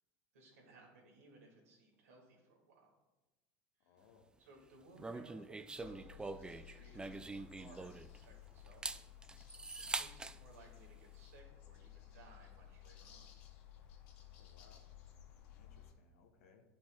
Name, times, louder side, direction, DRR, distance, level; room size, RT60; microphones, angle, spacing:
voice 1, 0.3-2.9 3.8-4.1 4.4-9.4 9.8-13.3, right 2 dB, 90° right, -1 dB, 2.0 m, -61 dB
voice 2, 3.8-4.3 14.3-14.9 15.5-16.6, left 5 dB, 85° left, 3 dB, 1.0 m, -66 dB
sound 1, 5.0-8.2 8.7-10.4, right 3 dB, 10° right, 0.3 m, -44 dB
sound 2, 5.7-15.9, left 11 dB, 70° left, 1.1 m, -57 dB
10.0 x 5.2 x 2.3 m, 1.1 s
hypercardioid pair, 90°, 8 cm